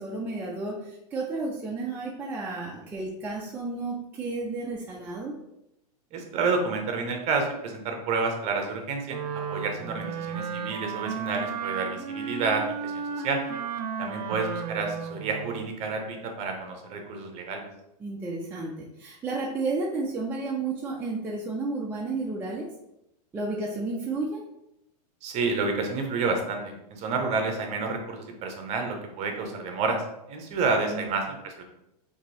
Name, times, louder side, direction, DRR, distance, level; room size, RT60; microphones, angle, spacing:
voice 1, 0.0-5.4 18.0-22.7 23.3-24.4 30.9-31.1, right 3 dB, 10° right, -4 dB, 0.4 m, -32 dB
voice 2, 6.1-9.2 9.5-13.4 14.0-17.6 25.2-30.0 30.3-31.6, right 4 dB, 30° right, 3 dB, 0.7 m, -29 dB
Wind instrument woodwind instrument, 9.1-15.8, right 6 dB, 70° right, 0.6 m, -34 dB
2.9 x 2.7 x 4.0 m, 0.85 s
hypercardioid pair, 135°, 21 cm